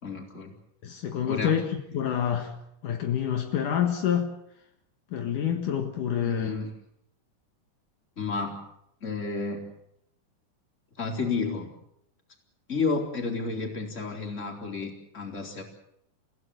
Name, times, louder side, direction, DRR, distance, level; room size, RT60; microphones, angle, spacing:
voice 1, 0.0-0.5 1.3-1.6 6.2-6.7 8.2-8.6 9.0-9.7 11.0-11.7 12.7-15.6, left 4 dB, 20° left, 2 dB, 4.1 m, -31 dB
voice 2, 0.8-2.6 2.8-4.3 5.1-6.6, left 9 dB, 70° left, 5 dB, 3.1 m, -27 dB
30.0 x 16.5 x 7.9 m, 0.76 s
omnidirectional pair, 3.9 m